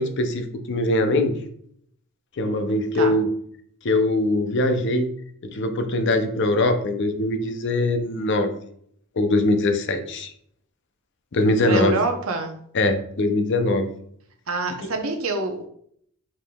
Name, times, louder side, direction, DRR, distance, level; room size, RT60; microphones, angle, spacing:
voice 1, 0.0-1.4 2.4-3.3 3.8-5.1 5.4-8.5 9.2-10.3 11.3-11.9 12.7-13.9, left 2 dB, 55° left, 7 dB, 0.5 m, -22 dB
voice 2, 11.6-12.6 14.5-15.7, right 3 dB, 70° right, 5 dB, 0.7 m, -26 dB
4.9 x 3.6 x 2.2 m, 0.66 s
head